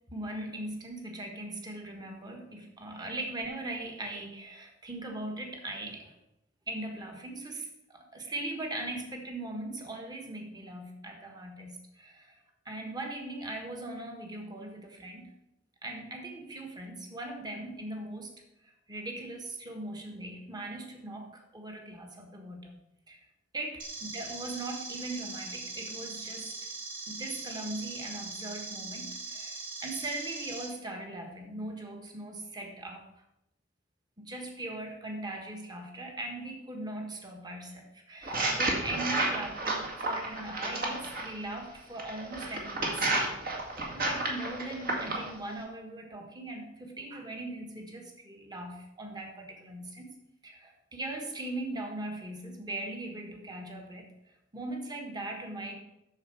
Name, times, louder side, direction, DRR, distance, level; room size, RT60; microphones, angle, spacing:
voice 1, 0.1-6.1 6.7-15.3 15.8-18.3 18.6-22.8 23.1-23.2 23.5-26.5 27.1-33.1 34.2-43.4 43.8-50.1 50.4-54.1 54.5-55.7, right 2 dB, 20° right, 2 dB, 1.4 m, -40 dB
sound 1, 23.8-30.6, right 3 dB, 80° right, 2.8 m, -41 dB
sound 2, 38.2-41.3 42.0-45.3, right 2 dB, 50° right, 1.8 m, -31 dB
8.9 x 6.6 x 4.5 m, 0.85 s
head